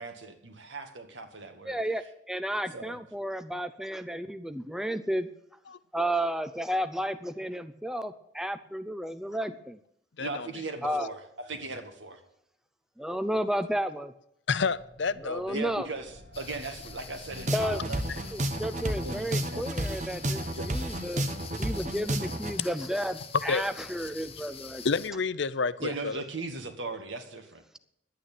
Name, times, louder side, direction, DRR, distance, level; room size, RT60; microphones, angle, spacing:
voice 1, 0.0-1.8 2.7-3.0 10.2-12.2 15.5-18.3 19.0-19.6 20.5-20.7 25.8-27.8, right 3 dB, 75° right, 2.0 m, -38 dB
voice 2, 1.6-5.3 5.9-9.8 10.8-11.1 13.0-14.1 15.2-15.9 17.5-17.8 18.3-21.2 21.6-24.8, equal, 5° right, 0.5 m, -32 dB
voice 3, 14.5-15.6 23.5-23.6 24.8-26.2, left 5 dB, 65° left, 0.6 m, -29 dB
sound 1, 14.7-24.9, equal, 55° right, 5.8 m, -50 dB
sound 2, 16.3-25.1, left 7 dB, 30° left, 1.0 m, -46 dB
sound 3, 17.3-22.5, right 1 dB, 40° right, 1.2 m, -31 dB
11.0 x 9.1 x 9.2 m
head